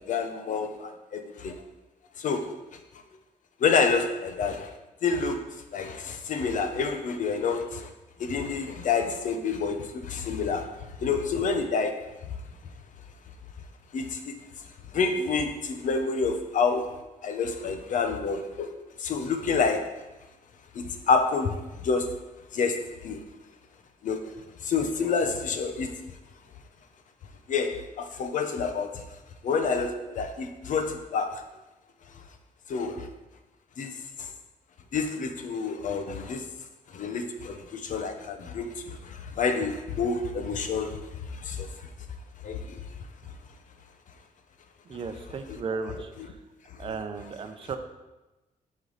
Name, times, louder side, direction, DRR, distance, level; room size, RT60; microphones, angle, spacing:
voice 1, 0.0-1.5 2.2-2.5 3.6-4.7 5.0-5.4 5.7-7.9 8.2-10.7 11.0-11.9 13.9-14.3 14.9-16.9 17.2-18.7 19.0-19.9 20.7-22.1 22.5-23.2 24.0-24.3 24.6-25.9 27.5-29.0 29.4-31.4 32.7-33.1 33.8-34.3 34.9-36.4 36.9-41.7 42.4-42.8 45.5-45.6, left 5 dB, 65° left, 6 dB, 0.9 m, -28 dB
voice 2, 44.9-46.4 46.8-47.8, right 5 dB, 40° right, 6 dB, 0.7 m, -35 dB
8.2 x 5.4 x 4.0 m, 1.1 s
cardioid pair, 125°, 14 cm